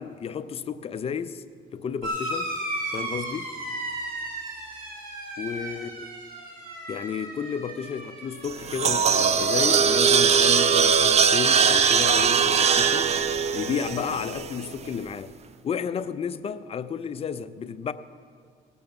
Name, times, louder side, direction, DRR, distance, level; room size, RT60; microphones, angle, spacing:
voice 1, 0.0-1.4 1.7-2.5 2.9-3.5 5.4-6.1 6.9-13.2 13.5-15.3 15.6-17.9, left 7 dB, 35° left, 0.6 m, -32 dB
sound 1, 2.0-11.0 11.3-12.1 13.2-13.3, right 1 dB, 60° right, 2.8 m, -36 dB
sound 2, 8.4-14.7, right 6 dB, 40° right, 0.6 m, -21 dB
18.0 x 7.0 x 6.0 m
cardioid pair, 110°, 17 cm